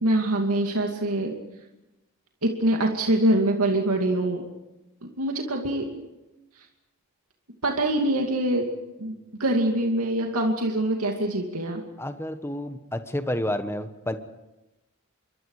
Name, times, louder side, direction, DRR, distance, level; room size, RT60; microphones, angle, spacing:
voice 1, 0.0-1.3 2.4-4.4 5.2-5.9 7.6-8.7 9.0-9.1 9.4-11.8, right 1 dB, 80° right, 2 dB, 2.6 m, -24 dB
voice 2, 12.0-14.1, left 1 dB, 10° left, 9 dB, 1.3 m, -30 dB
28.0 x 24.0 x 4.9 m, 1.0 s
head